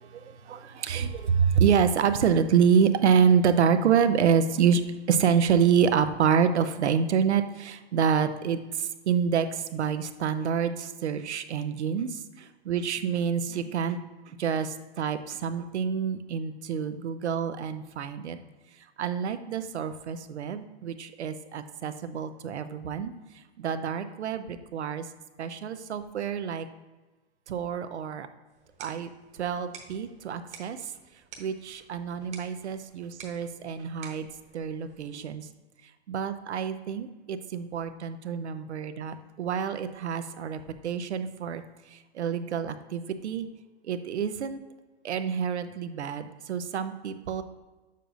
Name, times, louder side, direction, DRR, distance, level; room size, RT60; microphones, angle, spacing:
voice 1, 0.0-4.8 5.1-14.0 14.3-18.4 19.0-23.1 23.6-25.0 25.4-26.7 27.5-28.3 28.8-29.1 29.4-30.9 31.4-34.3 34.5-35.5 36.1-39.1 39.4-41.6 41.9-43.5 43.8-44.6 45.0-47.4, right 7 dB, 90° right, 10 dB, 0.7 m, -27 dB
sound 1, 28.5-35.4, right 6 dB, 20° right, 1.0 m, -51 dB
6.7 x 6.6 x 2.5 m, 1.2 s
hypercardioid pair, 135°, 33 cm